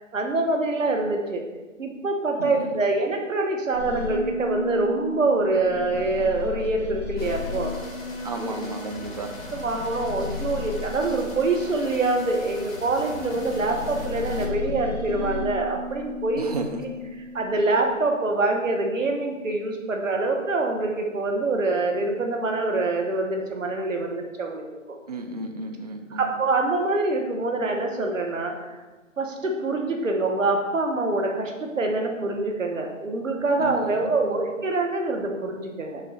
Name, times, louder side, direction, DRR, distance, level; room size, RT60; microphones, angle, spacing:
voice 1, 0.0-1.4 1.8-7.7 8.4-8.5 9.5-16.5 17.3-24.6 26.1-28.8 29.2-36.0, right 2 dB, 70° right, 2 dB, 1.3 m, -25 dB
voice 2, 2.4-2.9 8.2-9.3 16.4-16.8 25.1-26.3 33.6-34.4, right 2 dB, 30° right, 4 dB, 0.5 m, -33 dB
sound 1, 3.7-12.5 13.0-17.7, left 3 dB, ahead, 1.3 m, -34 dB
sound 2, 7.2-14.5, left 1 dB, 45° left, 1.7 m, -40 dB
6.8 x 3.8 x 5.5 m, 1.2 s
figure-of-eight pair, 145°, 40 cm